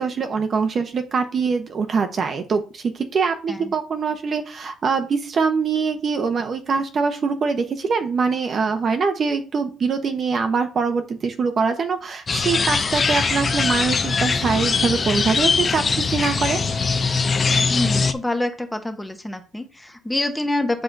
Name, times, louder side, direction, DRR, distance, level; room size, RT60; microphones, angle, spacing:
voice 1, 0.0-16.6, right 5 dB, 35° right, 6 dB, 0.8 m, -23 dB
sound 1, 12.3-18.1, left 4 dB, 25° left, 0.5 m, -21 dB
voice 2, 17.7-20.8, left 1 dB, 5° left, 6 dB, 0.8 m, -26 dB
8.0 x 5.9 x 2.6 m, 0.34 s
cardioid pair, 160°, 0 cm